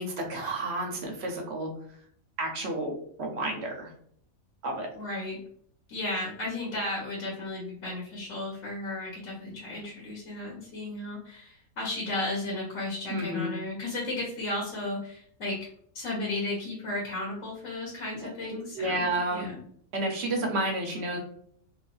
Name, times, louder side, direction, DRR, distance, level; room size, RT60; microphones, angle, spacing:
voice 1, 0.0-1.7 2.4-2.9 3.2-3.9 4.6-4.9 13.1-13.5 18.2-18.3 18.7-19.5 19.9-21.2, right 1 dB, 60° right, 2 dB, 0.8 m, -30 dB
voice 2, 4.9-5.4 5.9-15.6 15.9-19.0 19.3-19.6, left 2 dB, 70° left, -4 dB, 1.3 m, -34 dB
3.0 x 2.4 x 2.3 m, 0.63 s
omnidirectional pair, 1.5 m